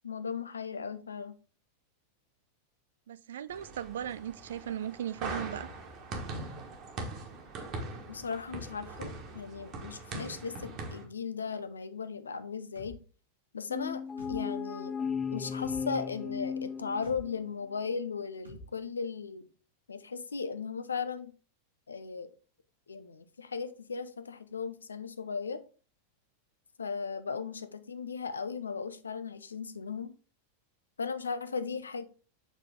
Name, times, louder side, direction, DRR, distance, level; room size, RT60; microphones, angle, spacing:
voice 1, 0.0-1.3 8.1-13.0 13.5-15.0 15.3-19.5 19.9-21.3 21.9-22.3 22.9-25.6 26.8-30.1 31.0-32.0, left 5 dB, 75° left, 0.5 m, -37 dB
voice 2, 3.1-5.7 27.3-27.4, right 10 dB, 60° right, 0.3 m, -37 dB
sound 1, 3.5-11.0, right 3 dB, 35° right, 1.4 m, -41 dB
sound 2, 12.8-12.9 14.2-14.4 15.6-15.8 17.0-17.2 18.4-18.6, equal, 85° right, 1.9 m, -46 dB
sound 3, 13.7-17.5, left 6 dB, 20° left, 0.3 m, -36 dB
7.2 x 4.0 x 3.6 m
figure-of-eight pair, 90°, 0 cm